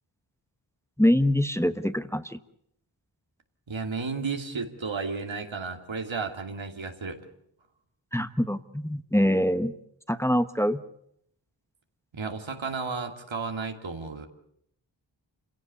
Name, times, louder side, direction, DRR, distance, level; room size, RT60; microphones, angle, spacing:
voice 1, 1.0-2.4 8.1-9.7 10.1-10.8, equal, 5° left, 10 dB, 1.1 m, -24 dB
voice 2, 3.7-7.2 12.1-14.3, right 4 dB, 85° right, 4 dB, 2.6 m, -33 dB
27.5 x 16.5 x 8.5 m, 0.72 s
wide cardioid pair, 50°, 45 cm